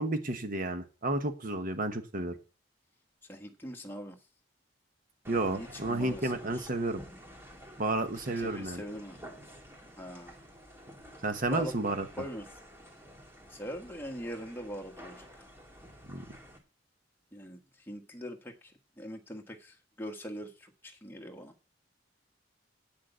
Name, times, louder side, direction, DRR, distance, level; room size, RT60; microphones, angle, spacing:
voice 1, 0.0-2.4 5.3-7.0 7.8-8.8 11.2-12.1 16.1-16.2, right 2 dB, 45° right, 8 dB, 1.2 m, -31 dB
voice 2, 3.3-4.2 5.5-6.7 8.1-9.2 10.0-10.3 11.5-11.7 12.2-12.4 13.5-15.3 17.3-21.5, equal, 10° left, 2 dB, 1.5 m, -42 dB
sound 1, 5.2-16.6, equal, 10° right, 2.0 m, -50 dB
8.4 x 6.4 x 8.0 m, 0.35 s
head